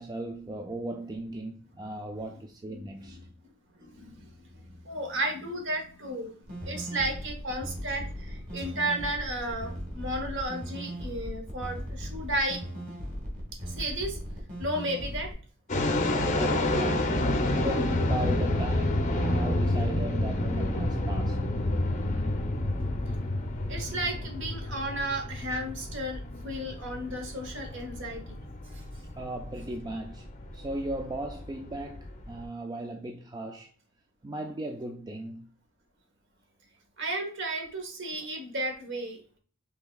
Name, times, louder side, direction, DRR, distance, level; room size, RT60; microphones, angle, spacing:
voice 1, 0.0-3.2 16.3-21.5 29.1-30.3 30.5-33.7 34.2-35.5, right 1 dB, 20° right, 0.3 m, -37 dB
voice 2, 2.7-3.2 3.7-12.6 13.7-14.2 14.6-15.3 23.7-28.4 28.7-28.8 37.0-39.4, right 1 dB, 55° right, 1.1 m, -34 dB
sound 1, 6.4-15.3, equal, 35° right, 1.8 m, -38 dB
sound 2, 15.7-32.4, left 1 dB, 35° left, 0.6 m, -29 dB
5.5 x 3.4 x 2.3 m
head